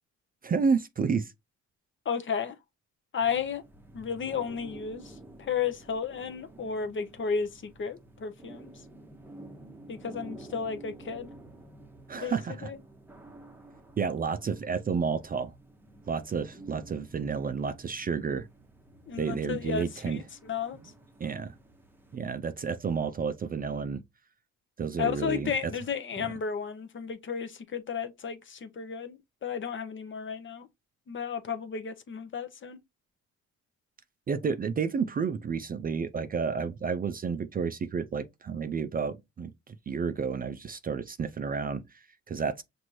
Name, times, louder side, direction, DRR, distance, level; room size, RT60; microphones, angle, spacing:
voice 1, 0.4-1.3 12.1-12.7 14.0-15.5 16.1-18.5 19.2-20.2 21.2-21.5 22.1-24.0 24.8-25.7 26.2-26.3 34.3-42.6, right 5 dB, 30° right, 0.4 m, -31 dB
voice 2, 2.0-2.6 3.1-3.6 3.9-8.7 9.9-11.3 12.2-12.8 19.1-20.8 25.0-30.7 31.1-32.8, left 6 dB, 40° left, 0.7 m, -33 dB
sound 1, 3.2-22.2, right 2 dB, 5° right, 0.8 m, -51 dB
5.9 x 2.6 x 3.0 m
cardioid pair, 90°, 30 cm